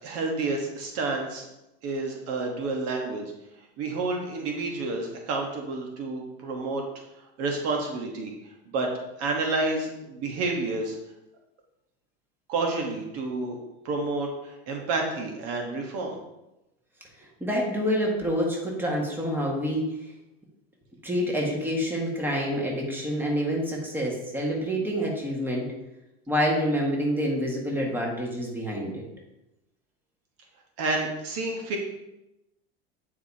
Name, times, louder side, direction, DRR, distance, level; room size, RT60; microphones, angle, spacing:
voice 1, 0.0-1.4 1.8-3.3 3.8-6.8 7.4-8.3 8.7-8.9 9.2-10.9 12.5-13.6 13.8-16.2 30.8-31.8, right 3 dB, 50° right, 1 dB, 1.2 m, -29 dB
voice 2, 17.4-20.1 21.0-25.7 26.3-29.0, equal, 5° right, -2 dB, 1.7 m, -27 dB
9.2 x 4.8 x 2.8 m, 0.93 s
supercardioid pair, 120°, 30 cm